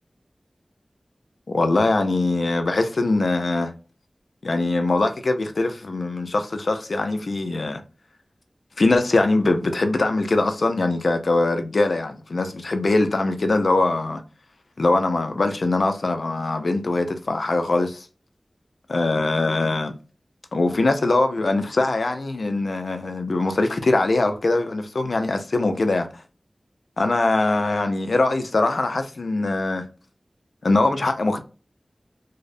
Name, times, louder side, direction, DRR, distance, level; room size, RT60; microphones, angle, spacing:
voice 1, 1.5-3.7 4.4-7.8 8.8-14.2 14.8-18.1 18.9-19.9 20.5-26.1 27.0-29.8 30.6-31.4, left 2 dB, 85° left, 0.4 m, -22 dB
2.6 x 2.0 x 2.5 m
wide cardioid pair, 60°, 0 cm